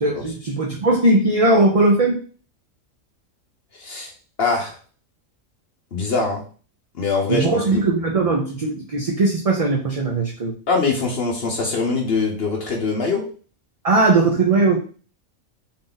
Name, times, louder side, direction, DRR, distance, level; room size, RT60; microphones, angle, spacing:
voice 1, 0.0-2.2 7.3-10.5 13.8-14.8, right 2 dB, 40° right, -1 dB, 0.5 m, -19 dB
voice 2, 3.8-4.1 4.4-4.8 5.9-6.4 7.0-7.9 10.7-13.2, left 4 dB, 55° left, 0 dB, 1.0 m, -23 dB
3.7 x 2.6 x 3.9 m, 0.38 s
omnidirectional pair, 1.3 m